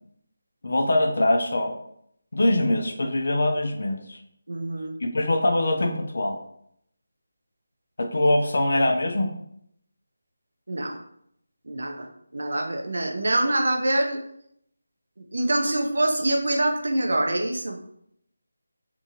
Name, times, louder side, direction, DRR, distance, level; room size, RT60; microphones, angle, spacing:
voice 1, 0.6-1.8 2.3-4.2 5.0-6.4 8.0-9.3, left 1 dB, 50° left, 5 dB, 0.4 m, -23 dB
voice 2, 4.5-5.0 10.7-11.0 11.6-14.2 15.2-17.8, right 1 dB, 60° right, 3 dB, 0.5 m, -25 dB
2.7 x 2.5 x 2.7 m, 0.72 s
figure-of-eight pair, 180°, 0 cm